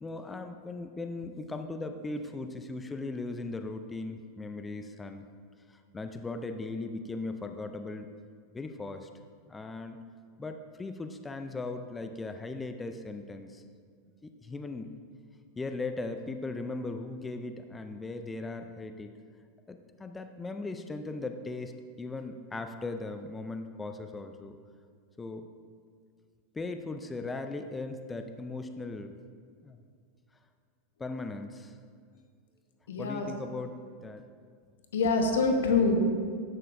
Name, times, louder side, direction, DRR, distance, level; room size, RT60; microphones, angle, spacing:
voice 1, 0.0-5.2 5.7-8.1 8.5-9.1 9.5-10.0 10.4-13.6 14.2-14.9 15.6-19.1 19.7-24.6 25.2-25.5 26.5-29.1 29.6-29.8 31.0-31.8 33.0-34.3, left 3 dB, 15° left, 7 dB, 0.4 m, -38 dB
voice 2, 32.9-33.3 34.9-36.0, left 4 dB, 85° left, 4 dB, 0.9 m, -25 dB
10.0 x 6.6 x 2.6 m, 2.1 s
hypercardioid pair, 115°, 0 cm